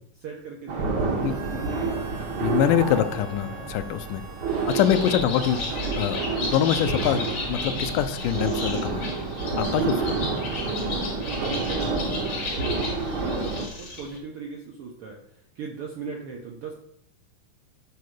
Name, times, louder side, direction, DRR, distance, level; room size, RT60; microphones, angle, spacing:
voice 1, 0.2-2.4 10.0-10.1 10.8-16.7, right 4 dB, 65° right, 0 dB, 1.5 m, -38 dB
sound 1, 0.7-13.7, right 4 dB, 85° right, 0.9 m, -29 dB
Harmonica, 1.1-6.0, right 2 dB, 35° right, 1.7 m, -46 dB
voice 2, 2.4-4.2 4.7-9.1 9.6-10.2, left 10 dB, 85° left, 10 dB, 2.3 m, -24 dB
Bird, 4.5-14.2, left 3 dB, 65° left, 3.7 m, -35 dB
10.5 x 4.2 x 6.6 m, 0.69 s
omnidirectional pair, 3.7 m